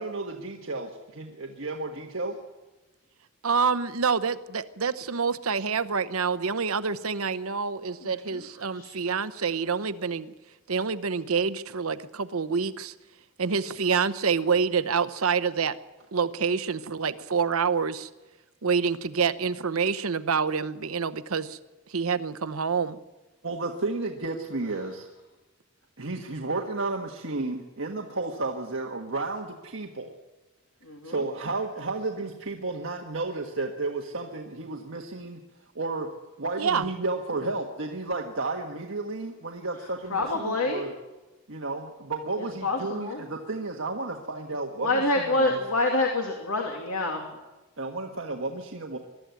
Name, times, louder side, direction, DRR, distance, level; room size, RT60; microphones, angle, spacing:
voice 1, 0.0-2.4 23.4-25.1 26.0-30.1 31.0-35.4 35.7-36.1 36.4-40.9 41.5-45.6 47.8-49.0, right 3 dB, 65° right, 2 dB, 1.5 m, -32 dB
voice 2, 3.4-10.3 10.7-12.9 13.4-15.8 16.1-18.1 18.6-21.6 21.9-23.0 36.6-36.9, right 5 dB, 85° right, 13 dB, 0.9 m, -27 dB
voice 3, 8.0-8.4 8.7-9.0 30.8-31.1 40.1-40.8 42.6-43.2 44.8-47.2, left 2 dB, 85° left, 1 dB, 2.7 m, -27 dB
22.5 x 13.0 x 9.3 m, 1.1 s
head